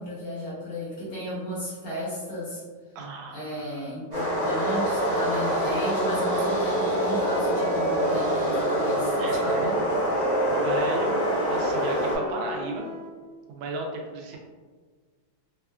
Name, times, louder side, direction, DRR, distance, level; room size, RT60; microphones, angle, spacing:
voice 1, 0.0-2.6 3.3-9.8, left 1 dB, 60° left, -7 dB, 1.0 m, -34 dB
voice 2, 2.9-3.6 9.2-12.8 13.5-14.4, right 2 dB, 85° right, 0 dB, 1.4 m, -35 dB
sound 1, 4.1-12.2, right 1 dB, 40° right, 0.6 m, -25 dB
Wind instrument woodwind instrument, 5.1-8.9 9.1-13.1, equal, 80° left, 1.3 m, -34 dB
3.5 x 2.3 x 2.2 m, 1.5 s
omnidirectional pair, 2.2 m